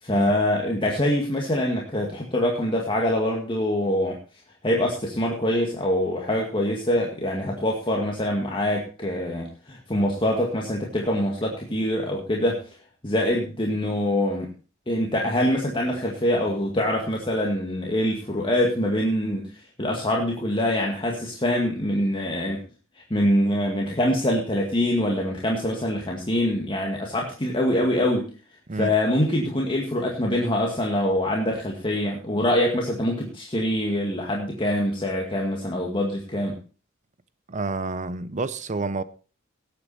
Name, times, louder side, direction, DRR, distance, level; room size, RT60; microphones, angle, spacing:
voice 1, 0.0-4.2 4.6-12.6 13.0-14.5 14.9-19.5 19.8-22.6 23.1-28.3 28.8-36.6, left 1 dB, 25° left, 2.0 m, -24 dB
voice 2, 37.5-39.0, right 3 dB, 35° right, 0.7 m, -29 dB
18.0 x 8.7 x 4.2 m
head